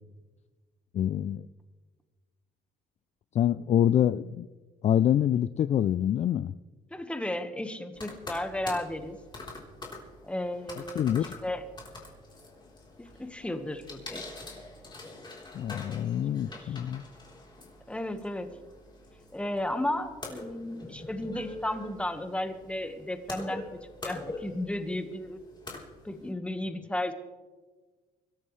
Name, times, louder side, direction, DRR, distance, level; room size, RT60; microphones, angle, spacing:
voice 1, 0.9-1.5 3.3-4.5 4.8-6.5 11.0-11.2 15.5-17.0, left 10 dB, 40° left, 14 dB, 0.4 m, -26 dB
voice 2, 6.9-9.2 10.2-11.6 13.0-14.2 16.5-16.8 17.9-18.5 19.3-23.6 24.0-25.4 26.0-27.1, left 1 dB, 5° left, 7 dB, 1.4 m, -34 dB
sound 1, 7.9-26.3, left 2 dB, 25° left, 3.8 m, -45 dB
25.0 x 13.5 x 3.3 m, 1.3 s
cardioid pair, 110°, 17 cm